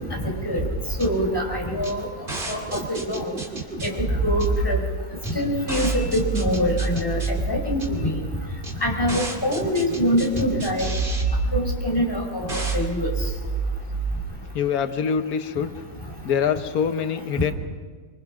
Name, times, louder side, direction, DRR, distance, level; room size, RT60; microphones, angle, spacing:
voice 1, 0.1-0.6 1.0-2.1 2.5-2.6 2.9-3.3 3.8-4.8 5.3-7.2 7.5-8.2 8.8-10.9 11.5-13.1, equal, 15° left, 0 dB, 4.2 m, -24 dB
sound 1, 0.6-14.2, right 3 dB, 35° right, 2.8 m, -28 dB
voice 2, 14.5-15.7 16.2-17.5, left 7 dB, 90° left, 9 dB, 1.4 m, -24 dB
25.0 x 25.0 x 5.9 m, 1.5 s
omnidirectional pair, 1.5 m